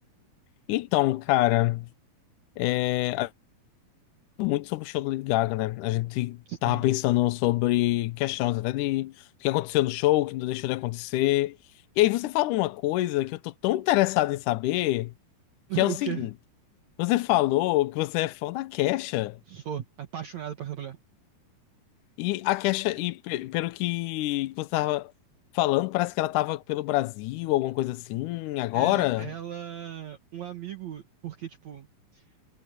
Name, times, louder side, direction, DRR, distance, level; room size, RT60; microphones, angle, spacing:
voice 1, 0.7-1.9 2.6-3.3 4.4-11.6 12.0-15.1 15.8-16.3 17.0-19.4 22.2-25.1 25.5-29.3, left 17 dB, 85° left, 1.8 m, -26 dB
voice 2, 6.5-6.9 15.7-16.3 19.5-21.0 28.7-31.9 32.1-32.2, right 10 dB, 60° right, 2.2 m, -36 dB
omnidirectional pair, 4.4 m